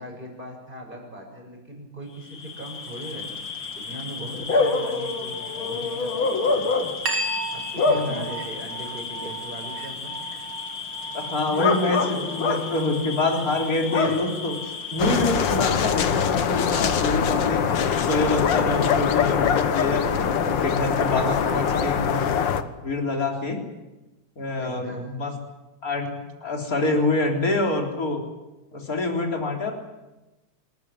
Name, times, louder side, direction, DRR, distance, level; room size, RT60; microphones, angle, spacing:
voice 1, 0.0-3.3 3.7-6.7 7.5-10.2 24.6-25.1, right 1 dB, 15° right, 1 dB, 7.0 m, -39 dB
Bark / Cricket, 2.3-15.6, left 4 dB, 40° left, 3.0 m, -28 dB
sound 1, 7.1-16.1, right 2 dB, 40° right, 1.9 m, -36 dB
voice 2, 7.9-8.2 11.1-14.6 14.9-22.3 22.8-23.6 24.4-25.3 25.8-28.2 28.7-29.7, left 2 dB, 25° left, 1 dB, 4.0 m, -26 dB
sound 2, 15.0-22.6, left 7 dB, 60° left, 1.2 m, -23 dB
26.5 x 15.0 x 9.8 m, 1.0 s
omnidirectional pair, 3.6 m